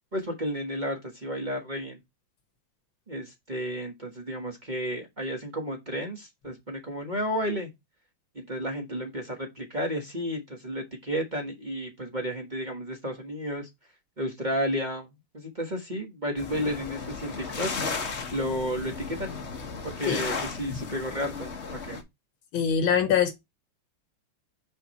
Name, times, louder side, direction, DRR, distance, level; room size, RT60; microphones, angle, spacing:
voice 1, 0.1-2.0 3.1-7.7 8.3-13.7 14.2-17.7 18.3-19.3 19.8-20.3 20.6-21.5 21.9-22.0, equal, 25° right, 1.3 m, -32 dB
sound 1, 16.4-22.0, left 4 dB, 40° left, 1.3 m, -35 dB
voice 2, 22.5-23.3, left 7 dB, 80° left, 2.0 m, -23 dB
5.7 x 5.1 x 4.2 m
omnidirectional pair, 2.2 m